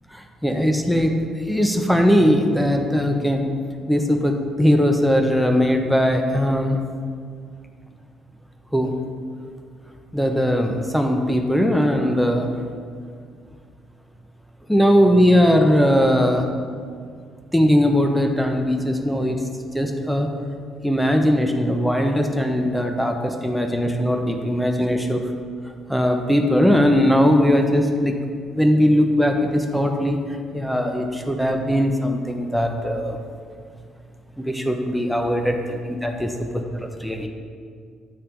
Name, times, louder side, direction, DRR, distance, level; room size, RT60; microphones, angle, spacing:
voice 1, 0.1-1.1 1.5-3.4 3.9-6.8 8.7-8.9 10.1-12.6 14.7-16.5 17.5-19.4 19.7-20.3 20.8-25.2 25.9-28.1 28.5-30.2 30.5-33.2 34.4-37.3, equal, 5° left, 4 dB, 0.7 m, -19 dB
7.8 x 3.3 x 5.7 m, 2.1 s
supercardioid pair, 65°, 0 cm